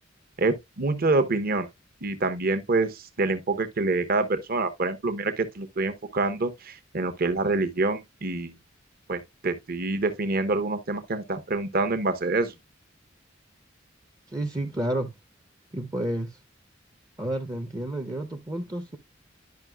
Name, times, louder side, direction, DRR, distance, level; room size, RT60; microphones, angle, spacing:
voice 1, 0.4-1.7 2.0-8.5 9.1-12.5, right 3 dB, 50° right, 1.0 m, -26 dB
voice 2, 14.3-15.1 15.7-16.4 17.2-19.0, right 1 dB, 20° right, 0.6 m, -30 dB
10.5 x 5.6 x 2.3 m
head